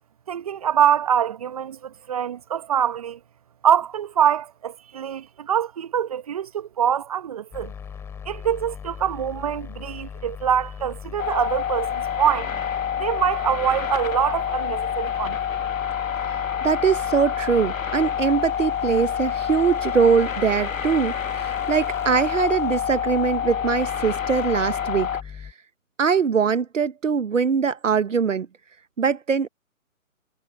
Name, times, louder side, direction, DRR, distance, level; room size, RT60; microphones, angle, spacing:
voice 1, 0.3-3.2 3.6-7.7 8.2-12.5 13.0-15.4, right 9 dB, 25° right, 1.2 m, -24 dB
sound 1, 7.5-25.5, left 7 dB, 5° left, 2.7 m, -38 dB
sound 2, 11.2-25.2, left 8 dB, 65° left, 1.3 m, -28 dB
voice 2, 16.6-25.1 25.4-25.5 26.0-28.5 29.0-29.5, right 6 dB, 60° right, 1.0 m, -22 dB
figure-of-eight pair, 150°, 42 cm